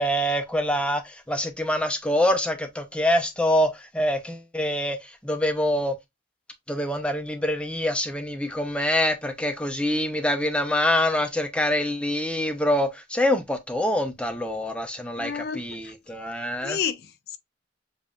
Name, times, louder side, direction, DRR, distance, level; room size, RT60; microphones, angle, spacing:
voice 1, 0.0-5.9 6.7-16.8, left 1 dB, 5° left, 0.7 m, -25 dB
voice 2, 15.2-15.9 16.6-17.4, left 7 dB, 55° left, 0.4 m, -31 dB
7.1 x 2.7 x 2.4 m
head